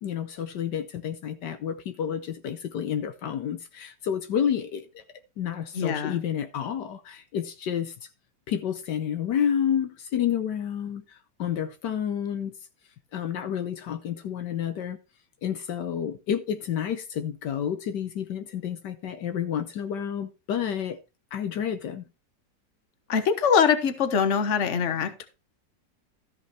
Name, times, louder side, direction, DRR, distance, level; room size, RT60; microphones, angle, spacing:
voice 1, 0.0-5.0 5.4-7.9 8.5-12.5 13.1-15.0 15.4-21.0 21.3-22.0, left 9 dB, 75° left, 1.4 m, -30 dB
voice 2, 5.7-6.2 23.1-25.3, left 7 dB, 45° left, 1.4 m, -23 dB
13.5 x 5.6 x 4.4 m
omnidirectional pair, 1.9 m